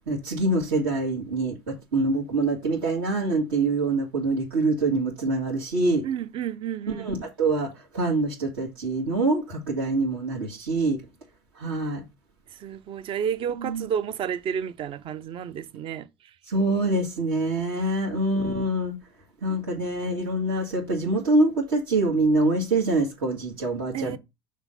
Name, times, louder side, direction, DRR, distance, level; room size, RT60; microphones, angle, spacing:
voice 1, 0.1-6.0 7.0-11.0 11.6-12.0 13.6-13.9 16.5-19.0 19.4-24.2, right 2 dB, 75° right, 2.1 m, -25 dB
voice 2, 6.0-7.1 12.5-16.1 23.9-24.2, right 8 dB, 45° right, 0.7 m, -31 dB
6.1 x 3.7 x 5.7 m
figure-of-eight pair, 70°, 13 cm